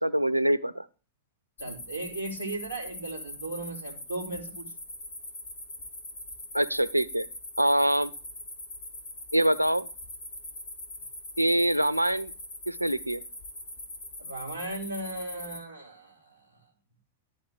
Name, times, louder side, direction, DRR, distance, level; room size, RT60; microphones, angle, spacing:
voice 1, 0.0-0.9 6.5-7.3 7.6-8.1 9.3-9.9 11.4-12.3 12.7-13.2, right 1 dB, 85° right, 16 dB, 0.4 m, -24 dB
voice 2, 1.6-4.7 14.2-16.5, right 2 dB, 90° left, -2 dB, 2.9 m, -37 dB
sound 1, 1.6-15.6, left 1 dB, 60° left, 2.6 m, -42 dB
11.5 x 4.2 x 4.9 m, 0.37 s
figure-of-eight pair, 90°, 0 cm